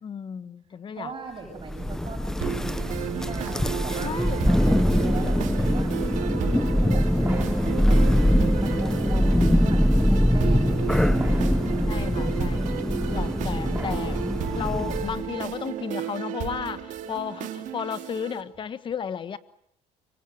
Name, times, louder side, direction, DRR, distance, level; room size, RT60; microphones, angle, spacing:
voice 1, 0.0-1.1 4.0-4.6 11.9-14.2 14.5-19.4, left 7 dB, 35° left, 13 dB, 1.4 m, -34 dB
voice 2, 1.0-3.0 3.3-4.1 4.4-5.9 6.2-7.6 7.8-8.3 8.6-11.5, right 4 dB, 35° right, 1 dB, 7.2 m, -41 dB
Thunder, 1.6-15.3, equal, 5° left, 1.0 m, -23 dB
sound 1, 2.4-18.4, right 10 dB, 65° right, 2.4 m, -34 dB
sound 2, 6.1-6.2 7.2-9.0 9.5-9.6 11.2-12.8 13.7-15.3, right 3 dB, 15° right, 2.8 m, -44 dB
25.0 x 24.5 x 7.9 m, 0.72 s
cardioid pair, 120°, 14 cm